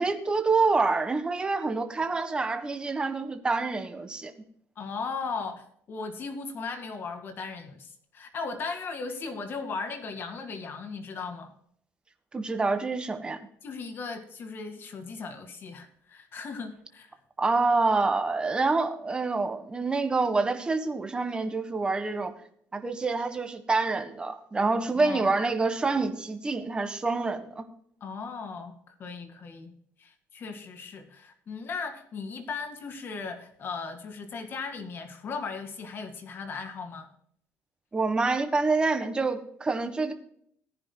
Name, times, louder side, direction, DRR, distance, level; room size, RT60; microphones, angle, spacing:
voice 1, 0.0-4.3 12.3-13.4 17.4-22.3 22.7-27.6 37.9-40.1, right 3 dB, 15° right, 7 dB, 1.3 m, -27 dB
voice 2, 4.8-11.5 13.6-17.1 24.9-25.3 28.0-29.7 30.0-37.1, left 4 dB, 40° left, 6 dB, 2.0 m, -37 dB
19.0 x 10.5 x 2.2 m, 0.65 s
cardioid pair, 150°, 6 cm